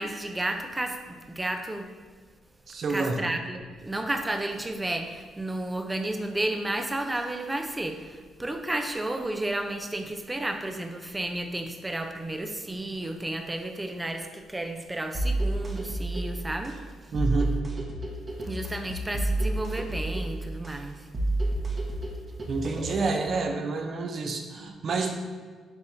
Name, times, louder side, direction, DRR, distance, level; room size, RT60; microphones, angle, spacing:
voice 1, 0.0-1.9 2.9-16.8 18.4-21.1, right 1 dB, 15° right, 5 dB, 0.6 m, -32 dB
voice 2, 2.7-3.2 17.1-17.5 22.5-25.1, right 3 dB, 50° right, 4 dB, 0.8 m, -28 dB
sound 1, 15.1-23.1, right 1 dB, 35° right, 1.1 m, -30 dB
10.5 x 3.5 x 2.8 m, 1.5 s
cardioid pair, 90°, 0 cm